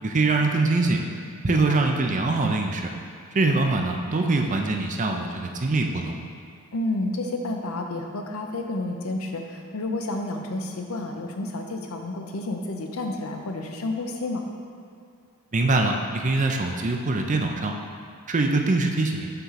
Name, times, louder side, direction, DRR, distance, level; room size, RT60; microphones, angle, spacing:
voice 1, 0.0-1.0 1.4-2.9 3.3-6.2 15.5-17.7 18.3-19.3, right 3 dB, 35° right, 3 dB, 0.5 m, -23 dB
voice 2, 1.5-1.8 6.7-14.4, left 2 dB, 70° left, 3 dB, 0.6 m, -30 dB
5.7 x 3.7 x 5.7 m, 2.4 s
head